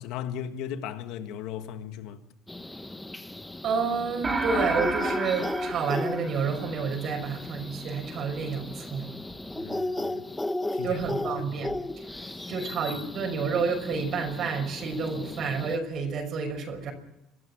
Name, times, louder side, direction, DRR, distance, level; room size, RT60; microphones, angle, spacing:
voice 1, 0.0-2.2 9.5-10.3 10.7-11.0 11.4-11.5 12.2-12.7, left 9 dB, 75° left, 1.8 m, -37 dB
sound 1, 2.5-15.8, left 1 dB, 10° left, 1.3 m, -35 dB
voice 2, 3.6-9.1 10.8-11.8 12.5-16.9, right 5 dB, 55° right, 5.9 m, -30 dB
sound 2, 4.2-6.9, right 3 dB, 25° right, 4.0 m, -30 dB
23.5 x 13.0 x 8.6 m
supercardioid pair, 95°, 0 cm